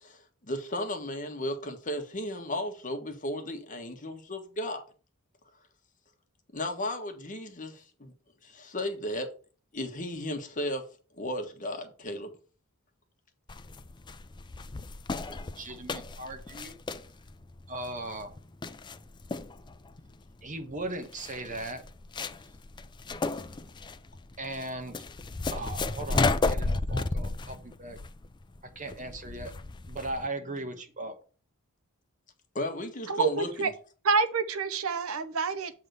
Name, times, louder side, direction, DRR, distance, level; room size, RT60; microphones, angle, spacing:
voice 1, 0.0-4.8 6.5-8.1 8.4-9.3 9.7-10.9 11.2-12.3 32.5-33.7, left 1 dB, 35° left, 1.4 m, -35 dB
sound 1, 13.5-30.3, left 3 dB, 20° left, 0.4 m, -33 dB
voice 2, 15.3-16.7 17.7-18.4 20.4-21.8 24.4-25.0 25.5-28.0 28.7-29.5 29.9-31.1, right 2 dB, 35° right, 1.2 m, -38 dB
voice 3, 33.1-33.7 34.0-35.7, right 4 dB, 65° right, 0.7 m, -27 dB
7.8 x 3.6 x 6.6 m
head